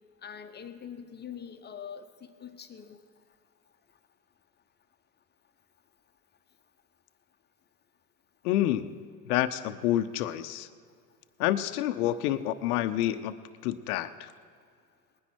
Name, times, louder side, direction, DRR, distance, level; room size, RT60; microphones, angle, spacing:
voice 1, 0.2-3.0, left 8 dB, 20° left, 8 dB, 0.9 m, -43 dB
voice 2, 8.4-8.9 9.2-10.7 11.4-14.3, left 13 dB, 70° left, 10 dB, 0.7 m, -28 dB
20.5 x 9.9 x 4.6 m, 2.2 s
hypercardioid pair, 95°, 47 cm